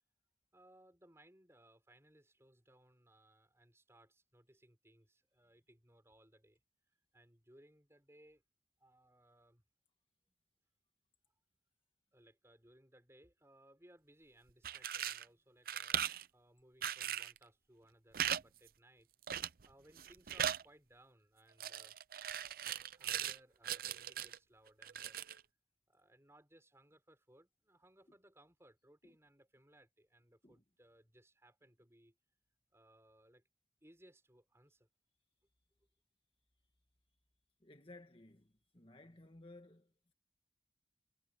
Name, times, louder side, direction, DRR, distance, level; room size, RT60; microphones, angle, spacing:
voice 1, 0.5-6.6 7.1-8.4 8.8-9.6 10.3-10.4 12.1-16.1 16.3-19.1 19.6-22.0 22.5-25.2 25.9-32.2 32.7-33.4 33.8-34.9, right 1 dB, 15° right, 5.7 m, -65 dB
sound 1, 14.5-15.3 15.7-16.3 16.8-17.4 18.1-18.4 18.7-18.8 19.3-19.7 20.0-20.6 21.6-23.4 23.6-24.4 24.8-25.4, right 10 dB, 55° right, 0.6 m, -39 dB
voice 2, 37.6-40.1, left 2 dB, 30° left, 1.6 m, -58 dB
head